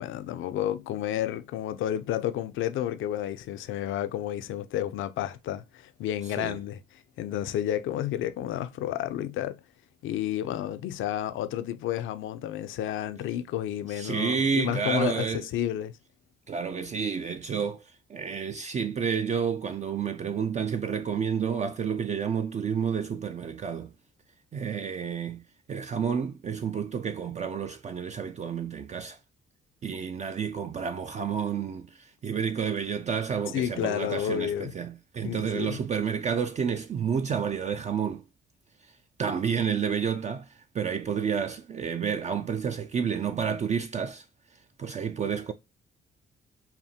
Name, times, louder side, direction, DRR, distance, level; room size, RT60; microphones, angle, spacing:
voice 1, 0.0-6.8 7.2-9.6 10.0-15.9 33.5-34.7 35.2-35.8, left 11 dB, 80° left, 0.5 m, -31 dB
voice 2, 13.9-15.5 16.5-23.9 24.5-25.4 25.7-29.2 29.8-38.2 39.2-44.2 44.8-45.5, right 7 dB, 35° right, 0.4 m, -30 dB
5.7 x 2.1 x 2.7 m
cardioid pair, 90°, 20 cm